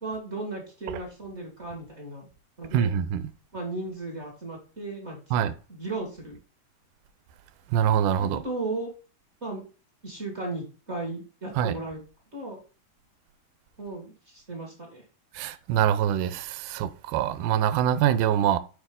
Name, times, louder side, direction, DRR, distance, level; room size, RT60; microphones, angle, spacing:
voice 1, 0.0-2.3 2.6-2.9 3.5-5.4 5.7-6.4 8.2-8.9 9.4-9.6 10.0-12.0 12.3-12.6 13.8-15.0, right 2 dB, 30° right, 1.3 m, -35 dB
voice 2, 2.7-3.3 5.3-5.5 7.7-8.4 11.6-11.7 15.3-18.6, right 9 dB, 75° right, 2.0 m, -24 dB
6.4 x 5.1 x 3.7 m
omnidirectional pair, 4.1 m